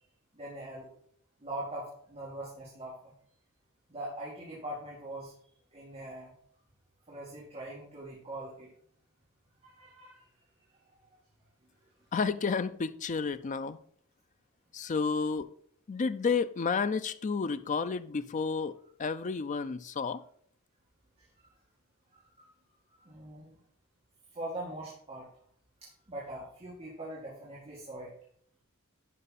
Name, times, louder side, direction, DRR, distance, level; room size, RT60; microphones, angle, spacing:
voice 1, 0.3-0.9 1.4-3.1 3.9-5.3 5.7-6.3 7.1-8.7 9.6-10.2 21.2-21.5 22.1-22.5 22.9-23.6 24.3-25.3 25.8-28.1, right 1 dB, 30° right, 2.0 m, -42 dB
voice 2, 12.1-13.8 14.7-15.5 15.9-18.7 19.0-20.2, left 5 dB, 35° left, 0.4 m, -31 dB
11.0 x 5.2 x 4.1 m
head